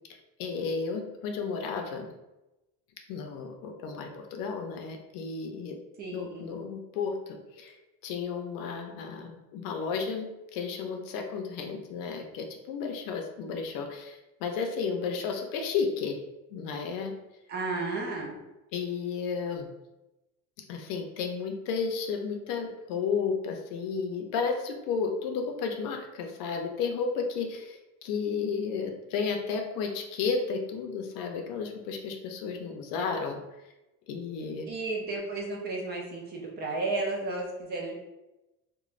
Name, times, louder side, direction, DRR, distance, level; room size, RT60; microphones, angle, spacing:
voice 1, 0.4-2.1 3.1-5.8 6.1-7.8 8.0-16.2 16.5-17.1 18.7-19.7 20.7-33.4 34.1-34.7, left 5 dB, 70° left, 4 dB, 0.5 m, -33 dB
voice 2, 6.0-6.5 17.5-18.4 34.7-37.9, right 2 dB, 30° right, -1 dB, 0.4 m, -33 dB
3.0 x 2.2 x 2.4 m, 0.99 s
cardioid pair, 170°, 34 cm